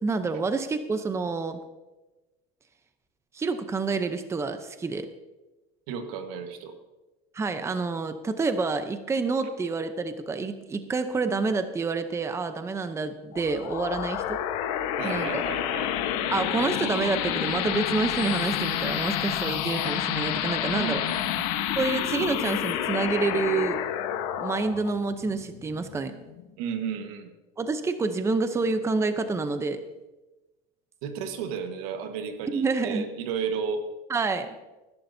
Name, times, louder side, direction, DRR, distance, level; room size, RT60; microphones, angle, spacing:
voice 1, 0.0-1.6 3.3-5.1 7.3-14.4 15.0-15.4 16.3-21.0 21.8-23.8 24.4-26.1 27.6-29.8 32.5-33.1 34.1-34.5, right 4 dB, 15° right, 9 dB, 0.7 m, -28 dB
voice 2, 5.9-6.7 15.0-15.9 20.7-21.5 26.6-27.3 31.0-33.8, right 6 dB, 85° right, 7 dB, 1.5 m, -33 dB
sound 1, 13.3-26.5, left 11 dB, 80° left, 1.2 m, -29 dB
20.5 x 11.5 x 2.7 m, 1.1 s
cardioid pair, 130°, 18 cm